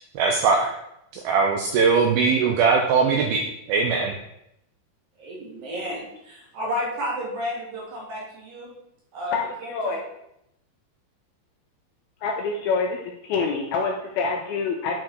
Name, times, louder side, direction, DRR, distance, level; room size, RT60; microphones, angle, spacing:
voice 1, 0.2-0.7 1.1-4.1, right 5 dB, 80° right, 2 dB, 2.2 m, -21 dB
voice 2, 5.2-8.7 9.1-9.3 9.6-9.9, left 1 dB, 60° right, -4 dB, 3.7 m, -32 dB
voice 3, 9.7-10.0 12.2-15.0, left 4 dB, 80° left, 2 dB, 2.3 m, -26 dB
9.4 x 4.7 x 4.7 m, 0.81 s
omnidirectional pair, 4.9 m